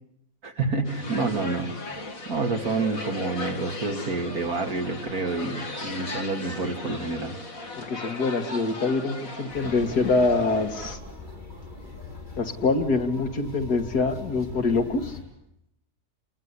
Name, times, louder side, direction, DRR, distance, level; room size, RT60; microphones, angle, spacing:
voice 1, 0.4-1.8 2.3-7.3, right 3 dB, 65° right, 4 dB, 2.9 m, -28 dB
sound 1, 0.8-11.0, left 2 dB, 60° left, 2.5 m, -37 dB
voice 2, 7.8-11.0 12.4-15.2, left 3 dB, 75° left, 5 dB, 2.8 m, -25 dB
sound 2, 9.5-15.2, left 3 dB, 30° left, 7.3 m, -42 dB
28.5 x 20.5 x 10.0 m, 0.79 s
omnidirectional pair, 1.7 m